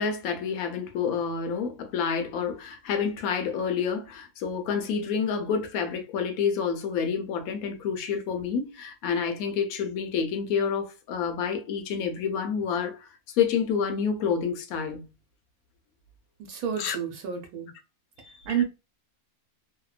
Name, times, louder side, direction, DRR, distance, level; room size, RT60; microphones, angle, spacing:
voice 1, 0.0-15.1 16.8-17.0 18.2-18.6, left 6 dB, 75° left, 1.0 m, -28 dB
voice 2, 16.5-17.7 18.5-18.6, right 8 dB, 80° right, 1.1 m, -29 dB
2.7 x 2.1 x 2.3 m
omnidirectional pair, 1.6 m